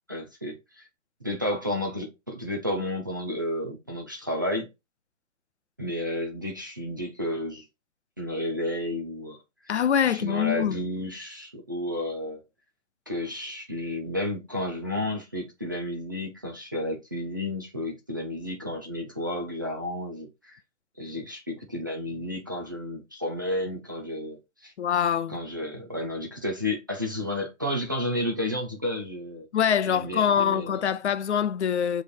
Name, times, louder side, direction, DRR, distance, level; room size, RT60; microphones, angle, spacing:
voice 1, 0.1-0.8 1.2-4.7 5.8-7.6 8.2-9.7 10.0-12.4 13.1-20.6 21.0-24.7 25.3-29.5 29.9-30.8, left 1 dB, 15° right, 0.5 m, -32 dB
voice 2, 9.7-10.8 24.8-25.4 29.5-32.0, left 8 dB, 60° left, 0.6 m, -24 dB
7.3 x 3.3 x 4.2 m
hypercardioid pair, 170°, 39 cm